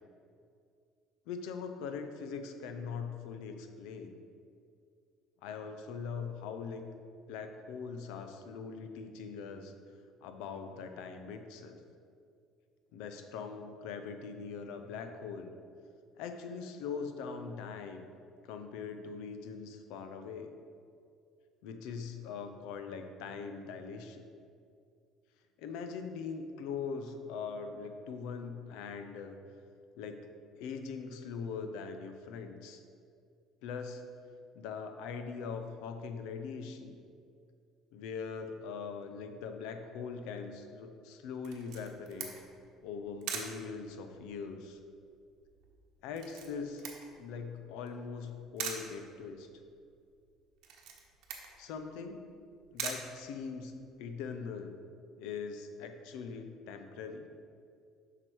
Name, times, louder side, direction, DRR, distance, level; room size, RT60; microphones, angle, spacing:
voice 1, 1.3-4.1 5.4-6.8 7.3-9.7 10.2-11.8 12.9-15.5 16.2-18.1 18.4-20.6 21.6-24.2 25.6-29.4 30.0-30.3 30.6-32.8 33.6-34.0 34.5-37.0 37.9-42.3 42.8-44.8 46.0-46.8 47.2-49.5 51.6-52.2 52.7-53.7 54.0-54.8 55.2-57.3, left 5 dB, 80° left, 7 dB, 0.7 m, -41 dB
Camera, 41.4-53.9, right 6 dB, 70° right, 1.1 m, -45 dB
7.9 x 5.9 x 4.6 m, 2.4 s
cardioid pair, 160°, 0 cm